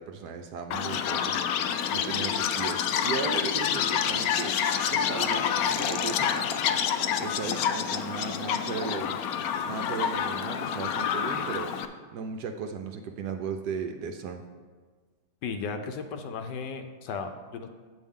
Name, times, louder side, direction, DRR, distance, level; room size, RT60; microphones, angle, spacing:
voice 1, 0.0-4.6 4.9-6.6 7.2-9.2 9.6-11.8 12.1-14.5, right 5 dB, 70° right, 5 dB, 1.0 m, -36 dB
Chirp tweet, 0.7-11.9, left 8 dB, 85° left, 0.8 m, -28 dB
voice 2, 15.4-17.7, left 5 dB, 70° left, 7 dB, 1.2 m, -35 dB
8.5 x 8.1 x 3.6 m, 1.5 s
omnidirectional pair, 2.1 m